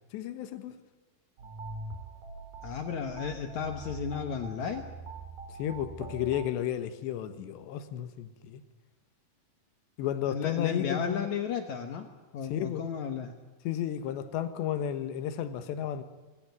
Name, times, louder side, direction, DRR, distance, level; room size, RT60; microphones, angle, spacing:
voice 1, 0.1-0.7 5.6-8.6 10.0-11.3 12.5-12.9 13.7-16.0, left 10 dB, 90° left, 10 dB, 3.5 m, -32 dB
sound 1, 1.4-6.4, right 3 dB, 50° right, 4.8 m, -43 dB
voice 2, 2.6-4.8 10.2-12.1 12.3-13.3, left 7 dB, 70° left, 6 dB, 1.8 m, -33 dB
23.5 x 16.5 x 9.5 m, 1.3 s
omnidirectional pair, 4.9 m